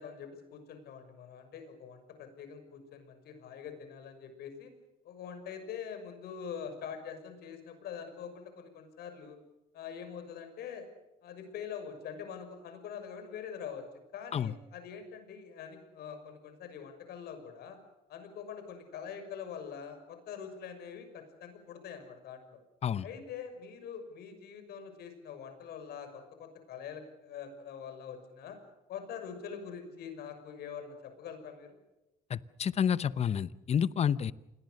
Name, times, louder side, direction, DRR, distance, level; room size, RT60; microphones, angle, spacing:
voice 1, 0.0-4.7 5.0-9.4 9.7-10.9 11.2-13.9 14.1-17.8 18.1-22.6 23.0-28.6 28.9-31.8, left 7 dB, 70° left, 8 dB, 6.3 m, -44 dB
voice 2, 32.3-34.3, left 8 dB, 40° left, 17 dB, 0.9 m, -29 dB
28.5 x 22.0 x 6.6 m, 0.99 s
cardioid pair, 110°, 17 cm